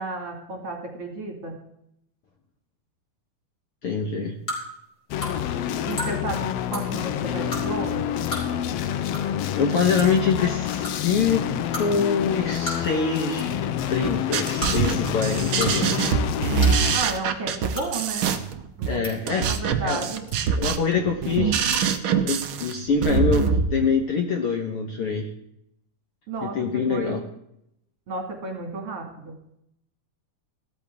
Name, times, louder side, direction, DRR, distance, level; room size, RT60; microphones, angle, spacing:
voice 1, 0.0-1.6 5.9-8.3 16.9-18.3 18.8-20.3 26.3-27.2 28.1-29.3, right 3 dB, 50° right, 2 dB, 3.1 m, -32 dB
voice 2, 3.8-4.3 9.6-11.5 11.8-13.5 13.9-15.9 18.9-19.5 19.8-20.0 20.6-21.6 22.2-25.3 26.4-27.2, left 5 dB, 55° left, 2 dB, 1.7 m, -24 dB
sound 1, 4.5-4.6 5.2-5.3 5.9-6.1 6.7-6.8 7.5-7.6 8.2-8.4 9.1-9.2 9.5-9.6 10.0-10.2 10.8-10.9 11.7-11.9 12.7-12.9 13.3-13.6 14.5-14.7 15.4-15.7 16.0-16.1 16.6-16.8 17.7-17.9 18.7-19.1 20.3-20.6 21.6-21.8 23.0-23.1, left 1 dB, 20° left, 5.3 m, -32 dB
sound 2, 5.1-17.0, left 10 dB, 85° left, 1.4 m, -28 dB
sound 3, 14.0-23.6, right 6 dB, 70° right, 1.2 m, -24 dB
16.5 x 13.5 x 3.6 m, 0.77 s
omnidirectional pair, 3.7 m